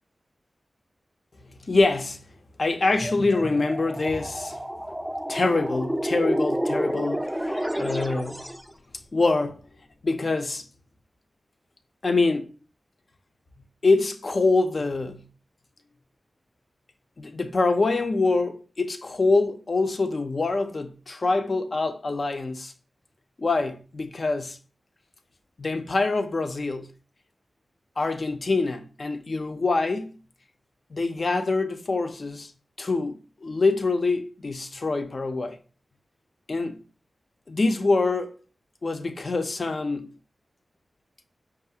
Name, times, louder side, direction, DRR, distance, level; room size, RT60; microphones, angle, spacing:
voice 1, 1.7-2.2 2.6-4.6 5.3-8.5 9.1-9.6 10.0-10.6 12.0-12.5 13.8-15.2 17.2-22.7 23.4-24.6 25.6-26.9 28.0-30.2 30.9-32.5 32.8-35.6 36.5-36.8 37.5-38.4 38.8-40.2, left 3 dB, 50° left, 0.5 m, -25 dB
sound 1, 2.9-8.7, equal, 5° right, 0.4 m, -29 dB
5.3 x 2.4 x 2.7 m
wide cardioid pair, 80°, 0 cm